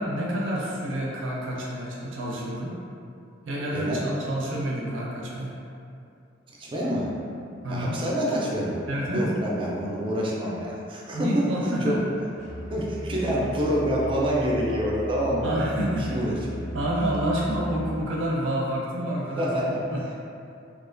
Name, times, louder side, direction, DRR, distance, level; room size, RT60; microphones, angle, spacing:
voice 1, 0.0-2.7 3.4-5.5 7.5-8.0 8.9-9.3 11.1-12.0 15.4-16.3 16.7-20.2, right 1 dB, 80° right, -4 dB, 0.5 m, -28 dB
voice 2, 3.7-4.0 6.6-7.1 7.7-8.8 9.1-11.4 11.8-12.0 12.7-15.5 16.1-16.8 19.4-19.8, equal, 25° right, -4 dB, 0.4 m, -27 dB
Musical instrument, 12.4-18.0, equal, 40° left, 0.5 m, -37 dB
2.4 x 2.1 x 2.4 m, 2.6 s
head